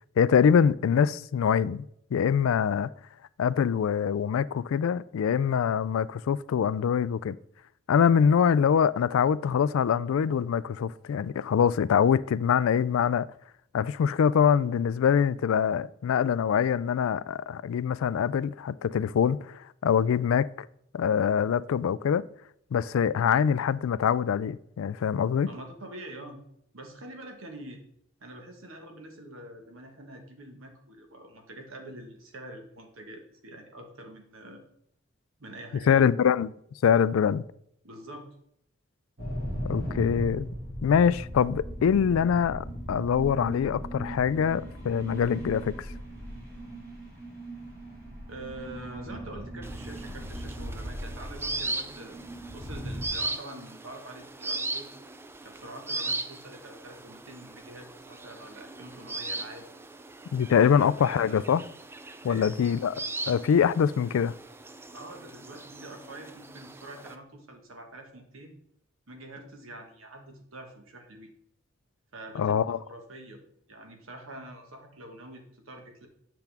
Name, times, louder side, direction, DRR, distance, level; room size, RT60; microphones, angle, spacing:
voice 1, 0.2-2.9 3.4-7.3 7.9-13.3 13.7-20.7 20.9-22.2 22.7-25.5 35.9-36.5 36.8-37.4 39.6-40.5 40.8-45.7 60.3-61.6 62.2-63.0 63.3-64.3 72.4-72.8, left 7 dB, 80° left, 0.3 m, -24 dB
voice 2, 25.5-26.4 26.7-27.8 28.2-34.6 35.4-36.1 37.8-38.3 48.3-52.2 52.5-54.9 55.4-59.7 60.7-61.5 62.3-62.5 64.9-68.5 69.1-71.3 72.1-73.4 73.7-76.1, right 1 dB, 75° right, 1.5 m, -45 dB
sound 1, 39.2-53.1, equal, 45° right, 2.3 m, -38 dB
sound 2, 49.6-67.1, right 2 dB, 10° right, 0.3 m, -38 dB
7.8 x 5.9 x 3.5 m
head